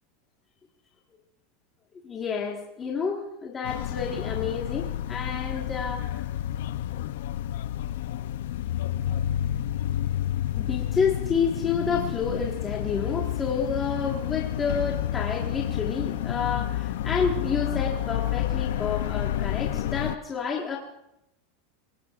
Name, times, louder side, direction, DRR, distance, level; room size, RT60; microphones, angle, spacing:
voice 1, 2.0-6.3 10.5-20.8, left 5 dB, 15° left, -2 dB, 1.6 m, -29 dB
sound 1, 3.6-20.2, left 12 dB, 75° left, 0.6 m, -30 dB
26.0 x 18.5 x 2.5 m, 0.84 s
supercardioid pair, 165°, 0 cm